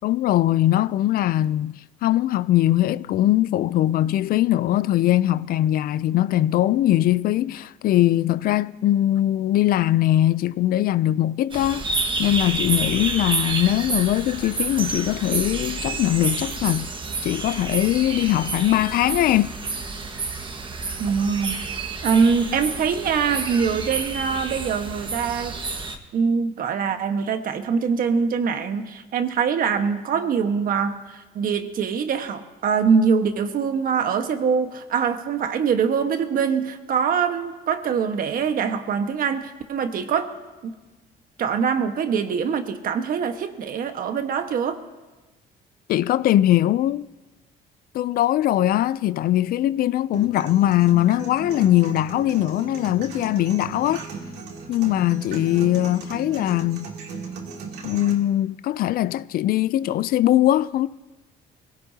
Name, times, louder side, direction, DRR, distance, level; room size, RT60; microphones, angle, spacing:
voice 1, 0.0-11.8 12.2-16.9 17.2-19.5 45.9-47.1 47.9-54.0 54.7-56.9 57.8-60.9, left 13 dB, 60° left, 0.4 m, -21 dB
sound 1, 11.5-26.0, right 4 dB, 30° right, 1.4 m, -29 dB
voice 2, 21.0-21.6 22.0-25.5 26.1-40.3 40.6-40.7 41.4-44.8, right 6 dB, 55° right, 1.4 m, -23 dB
sound 2, 50.1-58.1, right 4 dB, 75° right, 2.7 m, -37 dB
23.0 x 17.0 x 2.8 m
cardioid pair, 110°, 17 cm